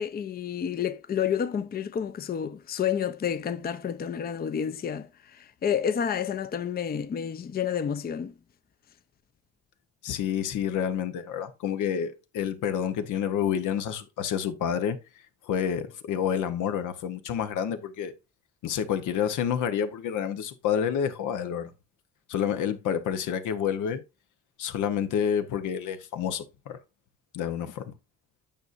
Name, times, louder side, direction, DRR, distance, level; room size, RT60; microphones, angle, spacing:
voice 1, 0.0-8.3, left 8 dB, 30° left, 0.5 m, -30 dB
voice 2, 10.0-18.1 18.6-21.7 22.3-24.0 24.6-26.8 27.3-27.9, left 8 dB, 85° left, 0.9 m, -29 dB
8.9 x 5.3 x 2.5 m
cardioid pair, 90°, 30 cm